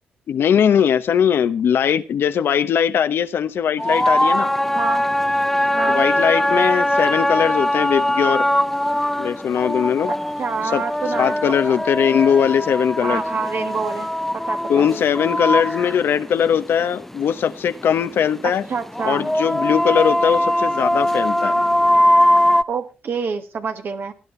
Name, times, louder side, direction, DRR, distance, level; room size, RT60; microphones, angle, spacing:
voice 1, 0.3-4.5 5.9-8.4 9.2-10.1 10.7-10.8 11.1-13.2 14.7-18.6 19.0-21.6, left 8 dB, 75° left, 12 dB, 0.8 m, -20 dB
sound 1, 3.8-22.6, left 1 dB, 5° left, 0.5 m, -21 dB
voice 2, 4.7-5.1 5.7-6.0 10.1-11.8 13.0-14.1 14.3-14.9 18.4-19.3 22.7-24.1, right 5 dB, 60° right, 7 dB, 1.6 m, -27 dB
18.0 x 10.5 x 3.2 m, 0.30 s
supercardioid pair, 50°, 4 cm